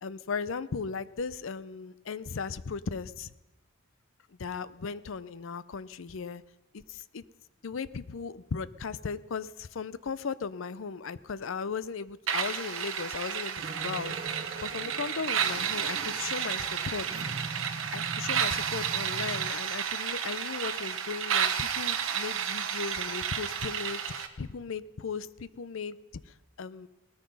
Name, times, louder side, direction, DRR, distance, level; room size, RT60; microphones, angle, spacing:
voice 1, 0.0-3.3 4.4-6.4 6.7-7.2 7.6-17.1 17.9-26.0 26.3-26.9, left 5 dB, 70° left, 17 dB, 0.5 m, -37 dB
sound 1, 12.3-24.3, right 8 dB, 70° right, 1.2 m, -32 dB
sound 2, 13.6-19.5, right 2 dB, 40° right, 0.6 m, -42 dB
18.5 x 13.5 x 5.4 m, 1.0 s
head